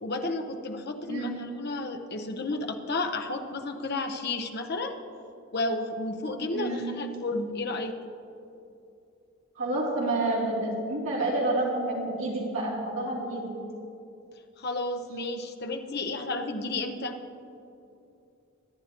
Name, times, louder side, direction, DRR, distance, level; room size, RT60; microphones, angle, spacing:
voice 1, 0.0-5.0 5.5-7.9 14.6-17.2, left 2 dB, 50° left, 5 dB, 0.8 m, -32 dB
voice 2, 1.1-1.5 6.5-7.1 9.6-13.6, right 2 dB, 70° right, -5 dB, 2.9 m, -29 dB
24.5 x 9.8 x 3.0 m, 2.7 s
head